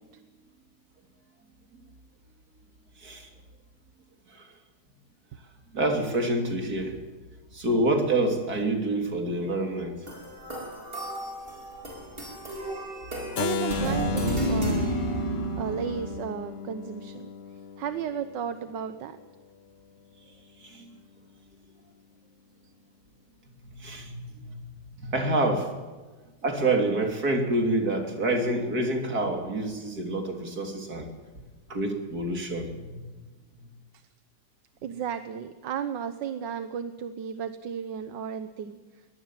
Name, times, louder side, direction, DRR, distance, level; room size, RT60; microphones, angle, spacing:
voice 1, 5.7-7.0 7.5-10.0 20.6-20.9 23.8-24.6 25.0-25.7 26.4-31.1 31.7-33.0, right 2 dB, 55° right, 4 dB, 3.7 m, -27 dB
sound 1, 10.1-16.1, right 2 dB, 30° right, 5.2 m, -31 dB
voice 2, 13.3-15.0 15.6-17.3 17.8-19.2 34.8-38.8, right 8 dB, 85° right, 10 dB, 1.7 m, -34 dB
Keyboard (musical), 13.4-19.2, left 6 dB, 55° left, 0.7 m, -35 dB
22.5 x 19.0 x 7.5 m, 1.3 s
omnidirectional pair, 1.9 m